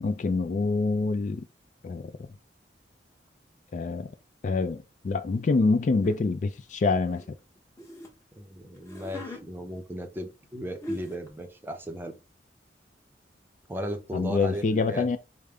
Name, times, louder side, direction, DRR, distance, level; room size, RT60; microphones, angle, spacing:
voice 1, 0.0-1.5 1.8-2.1 3.7-4.1 4.4-7.2 14.1-15.2, left 3 dB, 45° left, 0.3 m, -26 dB
sound 1, 6.0-6.2 6.8-8.1 8.8-9.4 10.4-10.5 10.8-11.3, left 1 dB, 15° left, 1.0 m, -39 dB
voice 2, 8.4-12.2 13.7-15.1, equal, 10° right, 0.6 m, -36 dB
5.1 x 2.1 x 3.4 m
head